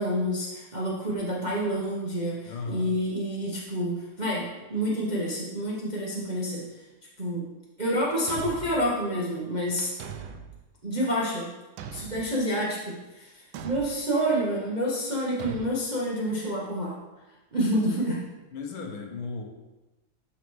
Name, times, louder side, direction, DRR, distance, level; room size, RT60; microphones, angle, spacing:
voice 1, 0.0-6.6 7.2-7.5 7.8-9.9 10.8-11.5 11.9-16.9 17.5-18.2, equal, 40° right, -5 dB, 0.6 m, -28 dB
voice 2, 2.5-2.9 17.6-18.1 18.5-19.4, left 4 dB, 80° left, 2 dB, 1.9 m, -36 dB
Thump thud, 8.3-8.9 10.0-10.6 11.8-12.3 13.5-14.0 15.4-15.7, right 7 dB, 75° right, 1.3 m, -39 dB
12.0 x 4.1 x 3.1 m, 1.1 s
omnidirectional pair, 2.3 m